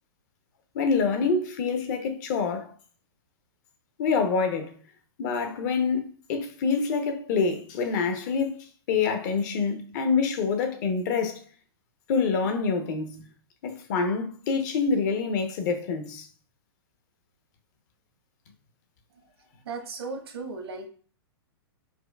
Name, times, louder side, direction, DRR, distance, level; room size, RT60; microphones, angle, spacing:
voice 1, 0.7-2.7 4.0-4.7 5.2-11.4 12.1-13.2 13.6-16.3, left 5 dB, 45° left, 0.6 m, -26 dB
voice 2, 19.7-20.9, right 4 dB, 80° right, 0.9 m, -36 dB
4.3 x 2.4 x 2.2 m
hypercardioid pair, 140°, 13 cm